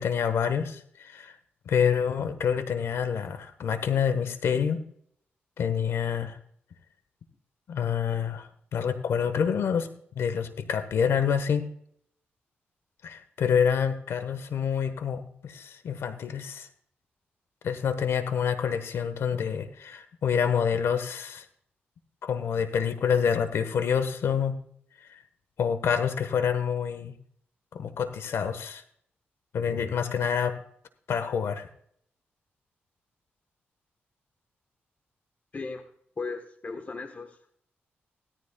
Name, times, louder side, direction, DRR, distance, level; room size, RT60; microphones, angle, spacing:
voice 1, 0.0-1.4 1.7-4.8 5.6-6.4 7.7-9.9 10.1-11.7 13.0-16.7 17.6-21.4 22.2-24.6 25.0-25.2 25.6-27.2 27.7-28.8 29.5-30.6 31.1-31.7, left 7 dB, 80° left, 11 dB, 1.2 m, -27 dB
voice 2, 35.5-35.8 36.2-37.4, left 4 dB, 40° left, 6 dB, 1.2 m, -36 dB
17.0 x 13.5 x 2.3 m, 0.66 s
cardioid pair, 90°, 4 cm